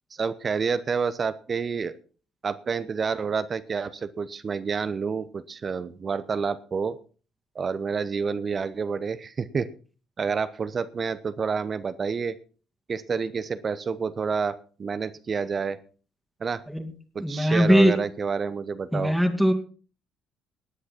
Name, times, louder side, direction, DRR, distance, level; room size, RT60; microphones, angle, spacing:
voice 1, 0.2-1.9 2.4-7.0 7.5-9.7 10.2-12.3 12.9-15.8 16.4-16.6 17.1-19.2, right 5 dB, 40° right, 13 dB, 0.9 m, -29 dB
voice 2, 17.2-18.0 18.9-19.5, equal, ahead, 4 dB, 2.3 m, -20 dB
18.0 x 10.0 x 4.3 m, 0.38 s
figure-of-eight pair, 50°, 0 cm